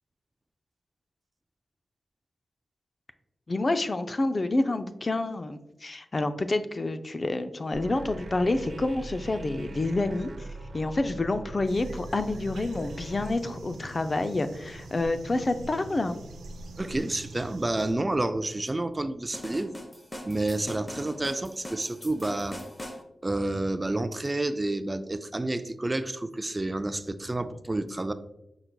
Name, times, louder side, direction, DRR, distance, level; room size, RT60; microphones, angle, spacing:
voice 1, 3.5-10.3 10.7-16.2, left 2 dB, 45° left, 10 dB, 0.4 m, -28 dB
sound 1, 7.7-13.3, right 2 dB, 60° right, 0.8 m, -41 dB
sound 2, 11.6-17.9, right 2 dB, 90° right, 0.6 m, -44 dB
voice 2, 16.8-19.8 20.2-22.6 23.2-28.1, right 2 dB, 30° right, 11 dB, 0.3 m, -29 dB
sound 3, 19.3-23.0, equal, 25° left, 0.8 m, -41 dB
5.8 x 3.9 x 2.2 m, 0.88 s
cardioid pair, 45°, 0 cm